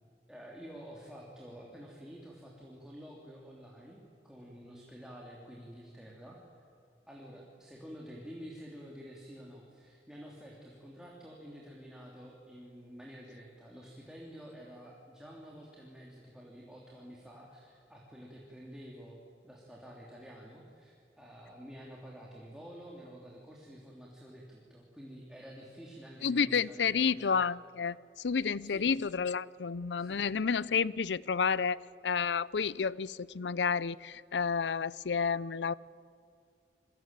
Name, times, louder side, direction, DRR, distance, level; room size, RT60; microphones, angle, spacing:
voice 1, 0.3-6.4 7.1-19.2 19.4-27.3 28.3-28.9 30.0-30.2, equal, 5° right, -3 dB, 3.2 m, -49 dB
voice 2, 26.2-35.7, left 6 dB, 85° left, 20 dB, 0.6 m, -30 dB
28.5 x 22.5 x 8.9 m, 2.3 s
head